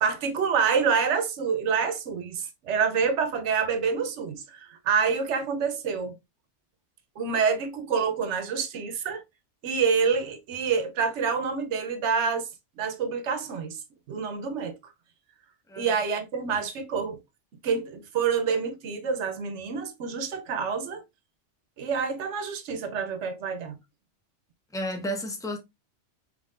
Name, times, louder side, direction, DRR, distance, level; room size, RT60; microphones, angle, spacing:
voice 1, 0.0-6.1 7.2-9.2 9.6-12.5 12.8-13.8 14.1-14.9 15.8-17.2 17.6-21.0 21.8-23.8, right 6 dB, 75° right, 1.1 m, -27 dB
voice 2, 24.7-25.6, equal, 5° left, 0.6 m, -32 dB
5.4 x 3.3 x 2.5 m
omnidirectional pair, 1.2 m